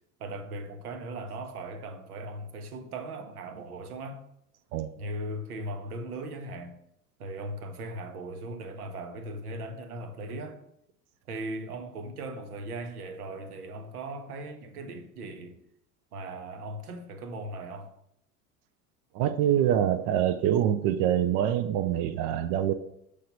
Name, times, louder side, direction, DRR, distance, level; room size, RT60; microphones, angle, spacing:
voice 1, 0.2-4.2 5.0-6.8 7.2-10.6 11.3-15.6 16.1-17.9, right 1 dB, 75° right, 0.9 m, -38 dB
voice 2, 19.1-22.7, right 10 dB, 40° right, 0.4 m, -25 dB
6.5 x 3.2 x 5.3 m
figure-of-eight pair, 70°, 46 cm